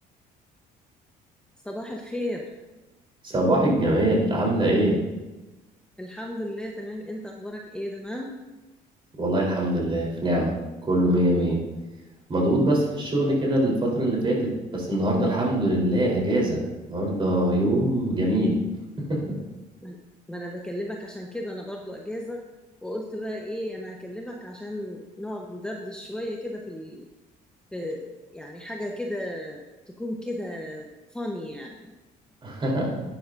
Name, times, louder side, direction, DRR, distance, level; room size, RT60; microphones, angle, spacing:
voice 1, 1.6-2.5 6.0-8.4 19.8-20.0 20.3-22.4 22.8-27.1 27.7-29.6 29.9-31.9, left 1 dB, 5° left, 0 dB, 0.9 m, -34 dB
voice 2, 3.2-5.0 9.2-10.6 10.8-11.6 12.3-18.6 19.1-19.4 32.4-33.0, right 1 dB, 30° right, -2 dB, 3.7 m, -23 dB
11.5 x 10.0 x 2.6 m, 1.1 s
cardioid pair, 110°, 17 cm